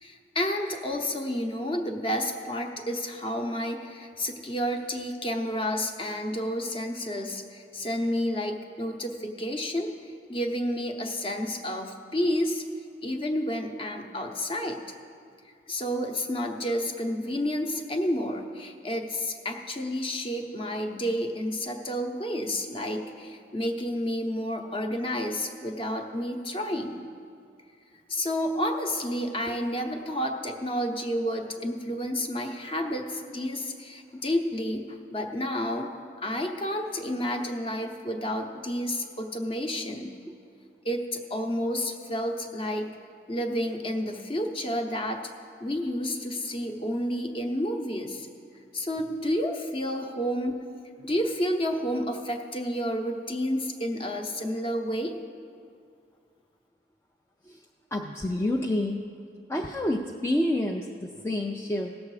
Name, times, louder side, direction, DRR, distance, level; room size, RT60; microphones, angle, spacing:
voice 1, 0.0-9.9 10.3-12.6 13.0-14.8 15.7-27.1 28.1-35.9 36.2-40.1 40.8-42.9 43.3-45.3 45.6-48.3 48.7-50.6 51.0-55.2, equal, 30° left, 4 dB, 0.9 m, -30 dB
voice 2, 57.9-59.1 59.5-61.9, left 1 dB, 15° left, 0 dB, 0.4 m, -28 dB
17.5 x 7.1 x 4.9 m, 2.4 s
head